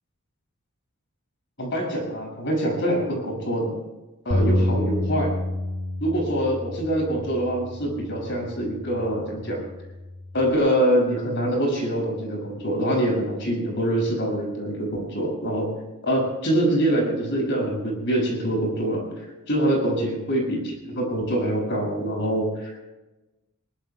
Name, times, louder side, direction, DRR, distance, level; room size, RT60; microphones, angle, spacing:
voice 1, 1.6-3.8 4.2-5.4 6.0-9.6 10.3-15.7 16.0-19.0 19.5-22.8, right 1 dB, 55° left, -1 dB, 6.5 m, -24 dB
Bass guitar, 4.3-10.6, left 1 dB, 75° left, 2.4 m, -29 dB
22.0 x 21.0 x 2.3 m, 1.1 s
head